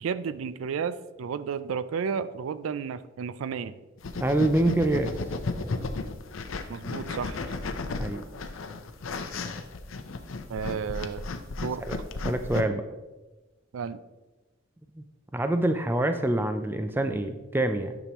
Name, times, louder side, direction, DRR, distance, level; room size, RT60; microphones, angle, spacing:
voice 1, 0.0-3.7 6.7-7.4 10.5-11.3 11.6-11.8 13.7-14.0, right 6 dB, 80° right, 14 dB, 0.4 m, -32 dB
sound 1, 4.0-12.6, left 3 dB, 75° left, 0.6 m, -34 dB
voice 2, 4.2-5.1 8.0-8.2 11.8-12.0 12.2-12.8 15.0-15.1 15.3-18.0, right 1 dB, 10° right, 8 dB, 0.4 m, -26 dB
9.9 x 6.1 x 3.0 m, 1.1 s
head